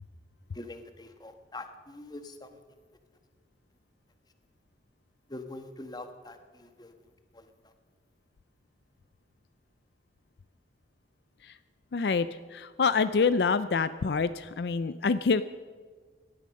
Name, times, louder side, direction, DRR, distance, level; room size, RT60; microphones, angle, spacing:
voice 1, 0.6-2.2 5.3-6.4 6.8-6.9, left 2 dB, 25° left, 8 dB, 1.3 m, -43 dB
voice 2, 11.9-12.3 12.5-15.4, left 5 dB, 65° left, 14 dB, 0.4 m, -26 dB
18.0 x 12.0 x 6.4 m, 1.5 s
head